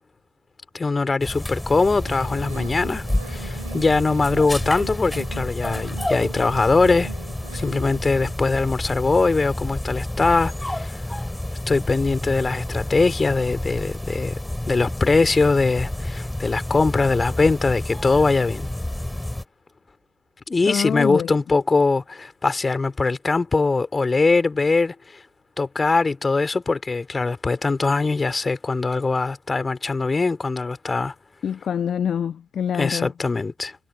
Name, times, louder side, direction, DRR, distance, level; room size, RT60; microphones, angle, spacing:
voice 1, 0.7-7.1 7.5-11.0 11.7-14.4 14.7-18.7 20.5-25.2 25.6-31.1 32.7-33.8, left 3 dB, 25° left, 3.7 m, -22 dB
sound 1, 1.2-19.4, left 1 dB, 10° left, 3.1 m, -30 dB
sound 2, 2.0-8.4, right 9 dB, 85° right, 3.4 m, -42 dB
voice 2, 20.7-21.3 31.4-33.1, left 8 dB, 45° left, 1.0 m, -25 dB
figure-of-eight pair, 55°, 0 cm